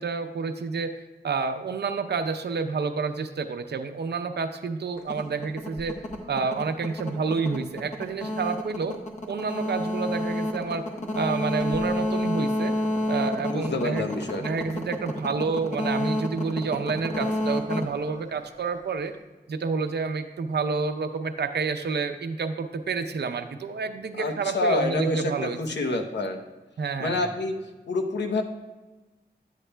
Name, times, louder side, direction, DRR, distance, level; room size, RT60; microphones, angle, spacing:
voice 1, 0.0-6.0 6.3-9.0 9.3-10.8 11.2-12.7 13.1-14.1 14.4-19.1 19.5-25.6 26.8-27.3, right 4 dB, 70° right, 7 dB, 0.6 m, -29 dB
sound 1, 5.0-18.8, left 1 dB, 40° left, 1.1 m, -30 dB
voice 2, 13.5-14.6 24.2-26.4 27.0-27.6 27.9-28.4, left 2 dB, 85° left, 3 dB, 0.9 m, -27 dB
11.0 x 8.2 x 2.2 m, 1.2 s
wide cardioid pair, 90°, 18 cm